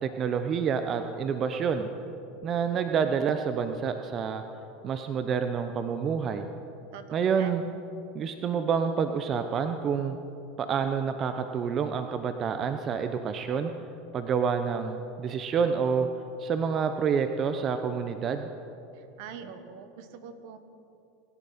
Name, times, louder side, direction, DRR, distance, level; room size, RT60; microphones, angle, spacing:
voice 1, 0.0-1.9 2.4-4.4 4.8-6.5 7.1-7.6 8.1-10.2 10.6-13.7 14.1-16.1 16.4-18.5, right 6 dB, 40° right, 7 dB, 0.9 m, -28 dB
voice 2, 6.9-7.5 18.9-20.6, right 7 dB, 70° right, 9 dB, 1.5 m, -44 dB
26.0 x 11.0 x 4.4 m, 2.8 s
hypercardioid pair, 90°, 0 cm